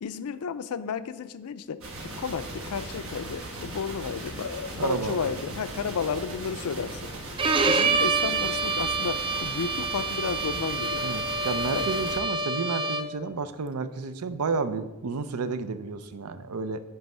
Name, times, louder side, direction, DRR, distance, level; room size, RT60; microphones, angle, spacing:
voice 1, 0.0-1.8 2.2-7.0 7.7-11.0 11.7-11.9, left 6 dB, 85° left, 13 dB, 0.4 m, -32 dB
sound 1, 1.8-12.2, right 1 dB, 65° right, 1.3 m, -39 dB
voice 2, 4.8-5.3 11.0-16.8, right 4 dB, 85° right, 11 dB, 0.5 m, -31 dB
Bowed string instrument, 7.4-13.2, right 4 dB, 25° right, 0.3 m, -27 dB
9.4 x 3.4 x 5.4 m, 1.1 s
head